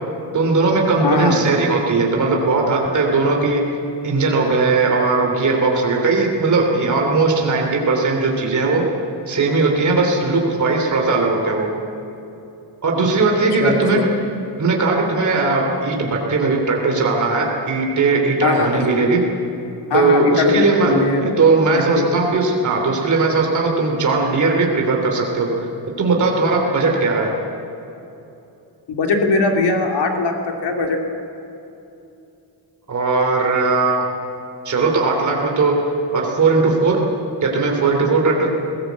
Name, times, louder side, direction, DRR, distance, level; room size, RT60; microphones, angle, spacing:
voice 1, 0.3-3.6 4.0-8.8 9.3-11.7 12.8-14.0 14.6-19.2 19.9-25.5 26.0-27.3 32.9-34.0 34.6-35.7 36.1-37.0 37.4-38.5, right 3 dB, 45° right, 0 dB, 3.2 m, -18 dB
voice 2, 1.0-1.4 13.6-14.0 18.4-18.9 19.9-21.2 21.7-22.1 28.9-31.0, left 3 dB, 70° left, 3 dB, 2.7 m, -20 dB
20.5 x 18.0 x 8.2 m, 2.8 s
wide cardioid pair, 155°, 42 cm